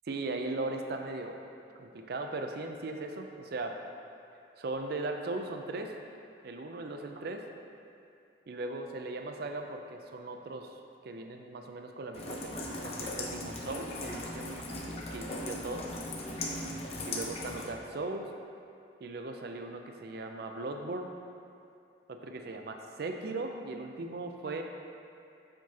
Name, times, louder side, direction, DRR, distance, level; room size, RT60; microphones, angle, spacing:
voice 1, 0.1-1.4 1.8-3.8 4.6-5.9 6.4-7.4 8.5-10.7 11.0-15.9 17.1-18.3 19.0-21.1 22.1-24.6, right 2 dB, 55° right, 4 dB, 0.4 m, -38 dB
Rain, 12.1-17.7, left 1 dB, 35° left, 0.7 m, -38 dB
7.3 x 5.9 x 2.8 m, 2.6 s
head